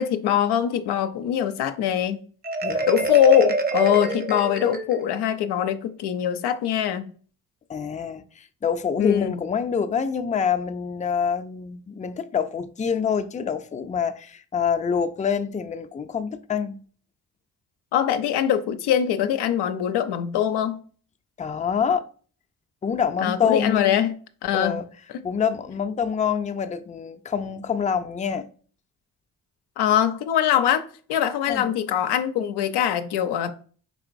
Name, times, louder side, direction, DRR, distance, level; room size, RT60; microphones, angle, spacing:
voice 1, 0.0-2.2 2.9-7.1 9.0-9.3 17.9-20.8 23.2-24.2 24.4-24.8 29.8-33.5, left 9 dB, 85° left, 0.5 m, -22 dB
Marimba xylophone, 2.4-5.2, right 2 dB, 25° right, 0.6 m, -26 dB
voice 2, 7.7-16.8 21.4-22.1 22.8-24.0 24.5-24.9 25.2-28.5 31.5-31.7, left 7 dB, 20° left, 0.4 m, -26 dB
4.7 x 2.9 x 2.5 m
supercardioid pair, 50°, 39 cm